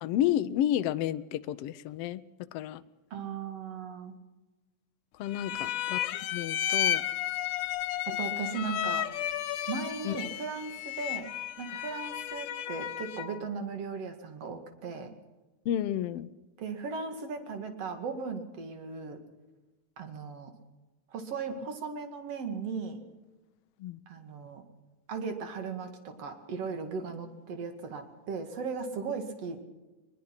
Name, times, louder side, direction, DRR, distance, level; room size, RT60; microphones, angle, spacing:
voice 1, 0.0-2.2 2.5-2.8 5.2-7.0 10.0-10.2 15.6-16.3 23.8-24.0, left 11 dB, 75° left, 12 dB, 1.4 m, -31 dB
voice 2, 3.1-4.1 8.1-9.1 9.7-11.3 11.6-15.1 16.6-19.2 20.0-20.5 21.1-23.0 24.1-24.6 25.1-29.6, right 5 dB, 55° right, 7 dB, 3.0 m, -37 dB
sound 1, 5.3-13.4, left 11 dB, 90° left, 2.4 m, -33 dB
21.5 x 21.0 x 5.9 m, 1.2 s
omnidirectional pair, 3.5 m